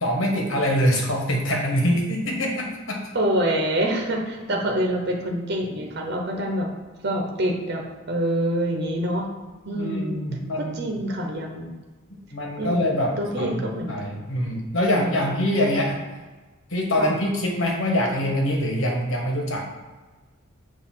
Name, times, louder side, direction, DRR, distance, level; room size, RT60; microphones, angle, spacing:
voice 1, 0.0-3.0 4.5-4.6 9.7-10.9 12.3-16.0 16.7-19.7, equal, 70° left, 0 dB, 1.4 m, -24 dB
voice 2, 3.1-6.7 7.0-9.3 9.6-10.2 10.6-11.7 12.6-12.8 13.2-14.2 14.9-15.1 17.0-17.1, right 1 dB, 55° right, 1 dB, 1.0 m, -26 dB
6.8 x 2.8 x 5.7 m, 1.3 s
head